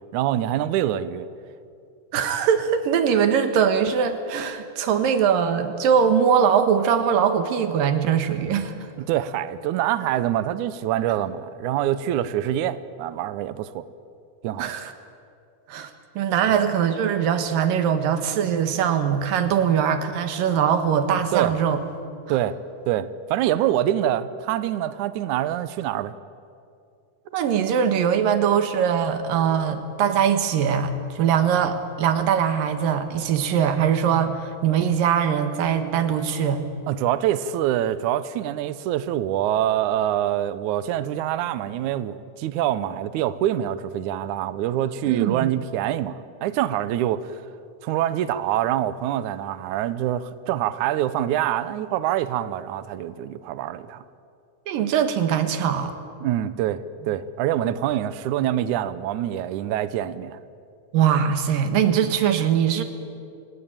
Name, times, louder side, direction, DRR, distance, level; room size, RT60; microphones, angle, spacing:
voice 1, 0.1-1.3 9.1-13.8 14.4-14.7 16.5-16.6 21.3-21.5 22.3-22.6 22.9-26.1 36.9-47.4 47.8-54.0 56.2-60.4, right 12 dB, 85° right, 14 dB, 1.7 m, -25 dB
voice 2, 2.1-8.9 14.6-14.9 15.7-21.8 22.3-22.4 27.3-36.6 45.1-45.5 54.7-55.9 60.9-62.8, right 8 dB, 65° right, 9 dB, 3.0 m, -21 dB
28.5 x 18.0 x 8.9 m, 2.4 s
omnidirectional pair, 4.5 m